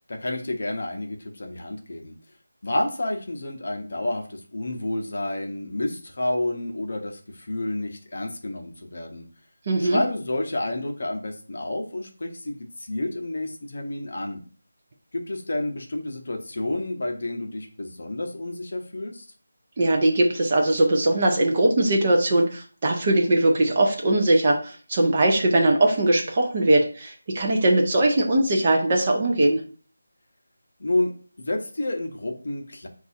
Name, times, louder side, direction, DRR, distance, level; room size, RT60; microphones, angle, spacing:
voice 1, 0.1-2.2 2.6-9.2 9.8-14.4 15.1-19.2 30.8-31.1 31.4-32.9, left 1 dB, 40° left, 3 dB, 0.7 m, -30 dB
voice 2, 9.7-10.0 19.8-29.6, right 1 dB, 20° right, 0 dB, 0.4 m, -20 dB
4.5 x 2.4 x 4.1 m, 0.40 s
figure-of-eight pair, 180°, 0 cm